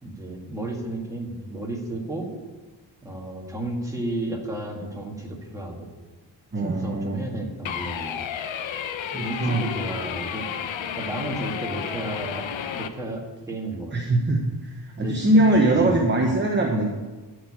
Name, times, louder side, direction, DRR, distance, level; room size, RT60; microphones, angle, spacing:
voice 1, 0.0-2.3 3.0-5.9 6.6-8.2 9.2-10.6 11.0-12.5 12.7-14.0 15.0-15.9, right 1 dB, 5° right, -1 dB, 1.9 m, -32 dB
voice 2, 6.5-7.2 9.1-9.6 13.9-16.9, right 1 dB, 25° right, 0 dB, 1.0 m, -22 dB
sound 1, 7.7-12.9, left 8 dB, 85° left, 0.8 m, -32 dB
12.5 x 4.9 x 8.6 m, 1.3 s
wide cardioid pair, 165°, 44 cm